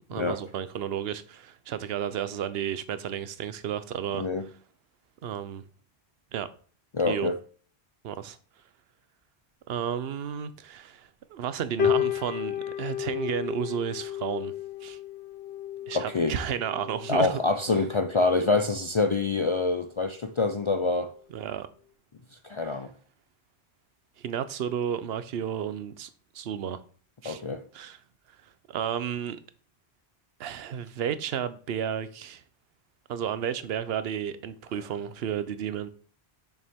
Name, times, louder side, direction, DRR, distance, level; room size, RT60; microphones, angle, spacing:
voice 1, 0.1-4.3 5.2-5.6 6.3-6.5 7.1-7.3 8.0-8.4 9.7-14.5 14.8-15.0 15.9-17.4 21.3-21.7 24.2-26.1 26.3-26.8 27.2-27.4 27.7-28.0 28.7-29.4 30.4-32.4 33.1-35.9, right 8 dB, 70° right, 0.9 m, -32 dB
voice 2, 4.1-4.5 6.9-7.4 15.9-16.4 17.1-21.1 22.4-22.9 27.2-27.6, left 3 dB, 55° left, 0.3 m, -26 dB
sound 1, 11.8-19.8 20.4-20.7, left 10 dB, 75° left, 1.2 m, -33 dB
6.8 x 6.0 x 3.5 m
omnidirectional pair, 1.1 m